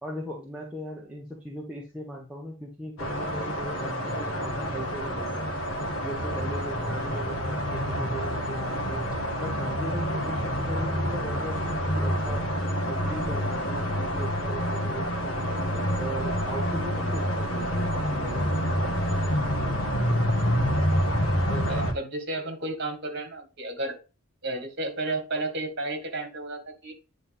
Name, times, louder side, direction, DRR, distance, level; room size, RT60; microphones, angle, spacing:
voice 1, 0.0-5.6 6.0-9.0 9.4-12.4 12.9-17.9 18.2-19.0, equal, 5° right, -4 dB, 1.2 m, -38 dB
sound 1, 3.0-21.9, equal, 70° left, 1.7 m, -28 dB
voice 2, 20.4-20.8 21.5-24.0 24.4-26.9, right 2 dB, 50° right, 4 dB, 1.9 m, -33 dB
9.5 x 4.2 x 3.6 m, 0.31 s
head